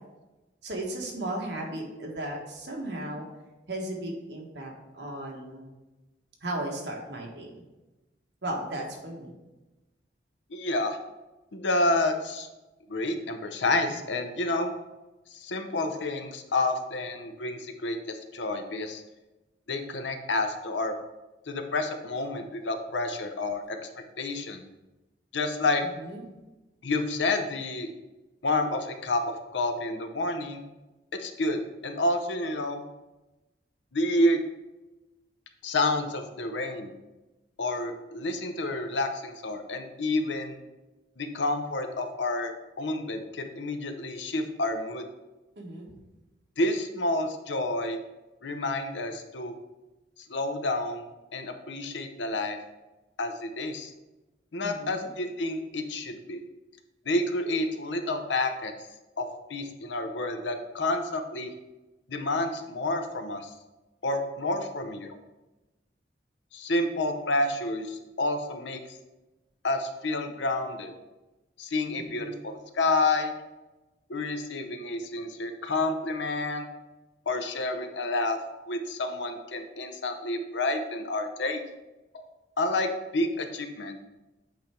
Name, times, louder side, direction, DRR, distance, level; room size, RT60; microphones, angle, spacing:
voice 1, 0.6-3.3 3.7-5.7 6.4-7.5 8.4-9.3 25.9-26.2 45.6-46.0 54.6-55.1 71.9-72.4, right 1 dB, 65° right, -1 dB, 1.4 m, -36 dB
voice 2, 10.5-11.0 11.5-12.5 12.9-14.7 15.3-19.0 19.7-20.9 21.5-23.8 24.2-24.6 25.3-25.8 26.8-27.9 28.4-30.6 31.1-32.8 33.9-34.4 35.6-36.9 37.6-40.6 41.2-45.0 46.6-48.0 48.4-49.5 50.3-51.0 51.3-52.6 53.2-53.9 54.5-56.4 57.1-58.7 59.2-61.5 62.1-63.5 64.0-65.1 66.5-68.8 69.6-70.9 71.6-73.3 74.1-76.7 77.3-78.4 78.7-81.6 82.1-82.2 82.6-84.0, left 2 dB, 80° left, 6 dB, 0.7 m, -29 dB
8.2 x 3.3 x 4.4 m, 1.1 s
head